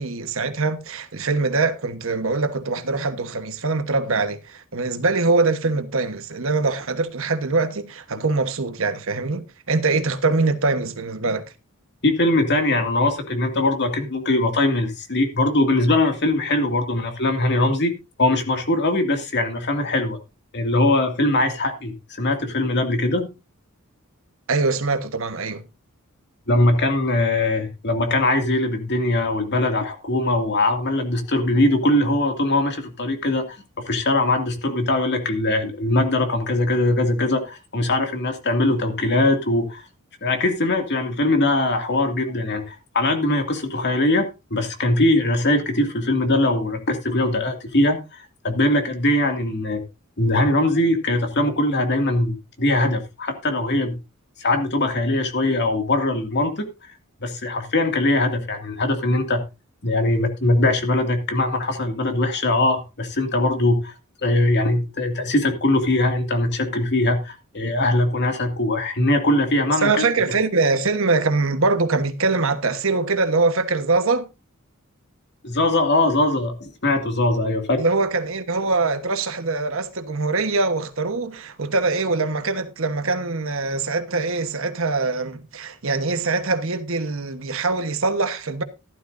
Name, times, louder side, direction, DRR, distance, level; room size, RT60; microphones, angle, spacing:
voice 1, 0.0-11.4 24.5-25.6 69.8-74.3 77.8-88.6, right 3 dB, 70° right, 1.3 m, -23 dB
voice 2, 12.0-17.9 18.2-20.2 20.5-23.3 26.5-33.6 33.9-39.8 40.2-49.8 50.2-54.0 54.4-56.6 57.2-59.4 59.8-63.9 64.2-69.9 75.4-77.8, left 2 dB, 55° left, 2.4 m, -21 dB
15.0 x 12.0 x 2.7 m
head